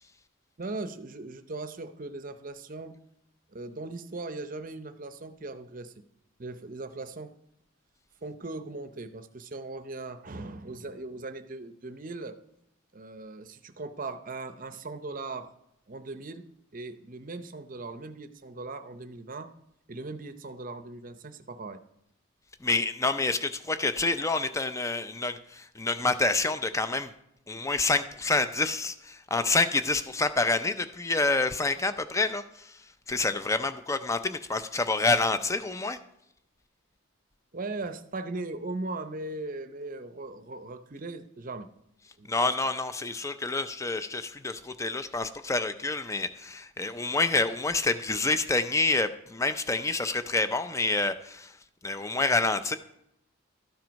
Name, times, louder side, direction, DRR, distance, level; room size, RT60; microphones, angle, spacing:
voice 1, 0.6-2.9 3.5-6.0 6.4-7.3 8.2-12.4 12.9-15.5 15.9-16.4 16.7-19.5 19.9-21.8 37.5-41.7 42.2-42.5, right 2 dB, 40° right, 10 dB, 0.6 m, -39 dB
voice 2, 22.6-27.1 27.5-32.8 33.1-36.0 42.3-51.5 51.8-52.8, left 3 dB, 15° left, 11 dB, 0.4 m, -28 dB
13.0 x 7.5 x 5.2 m, 0.80 s
head